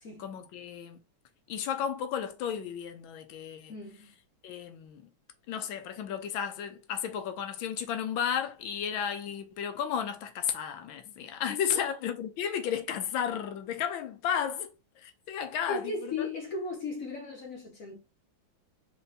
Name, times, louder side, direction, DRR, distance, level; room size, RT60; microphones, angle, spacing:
voice 1, 0.2-1.0 1.5-3.7 4.4-5.0 5.5-14.7 15.0-16.1, left 8 dB, 85° left, 1.5 m, -33 dB
voice 2, 3.7-4.1 11.7-11.9 15.7-18.0, left 3 dB, 55° left, 1.1 m, -36 dB
4.3 x 3.3 x 2.6 m
omnidirectional pair, 2.1 m